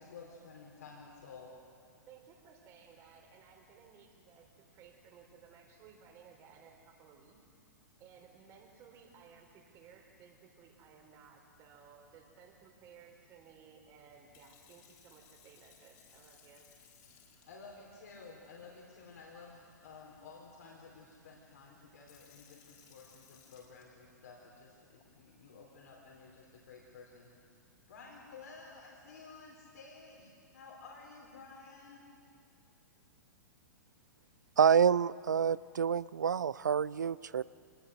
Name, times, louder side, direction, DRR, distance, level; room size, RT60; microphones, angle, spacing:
voice 1, 0.0-1.5 17.5-27.3 27.9-32.0, left 4 dB, 60° left, -2 dB, 4.2 m, -53 dB
voice 2, 2.1-7.4 8.0-16.7, right 7 dB, 30° right, 3 dB, 3.9 m, -58 dB
Sink (filling or washing) / Fill (with liquid), 14.1-24.4 25.0-25.3, left 7 dB, 35° left, 3.7 m, -65 dB
voice 3, 34.6-37.4, right 7 dB, 70° right, 21 dB, 0.5 m, -27 dB
26.5 x 19.0 x 6.7 m, 2.3 s
figure-of-eight pair, 110°, 10 cm